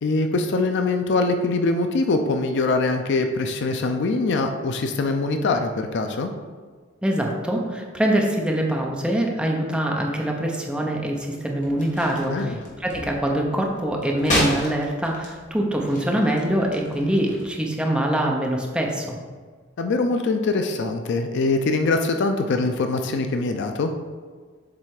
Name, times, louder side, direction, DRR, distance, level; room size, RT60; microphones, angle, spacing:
voice 1, 0.0-6.3 12.3-12.6 19.8-23.9, left 3 dB, 60° left, 6 dB, 0.5 m, -23 dB
voice 2, 7.0-12.5 12.8-19.2, right 1 dB, 5° right, 0 dB, 0.7 m, -24 dB
sound 1, 11.6-17.5, left 1 dB, 40° left, 1.6 m, -31 dB
7.6 x 3.3 x 4.8 m, 1.5 s
head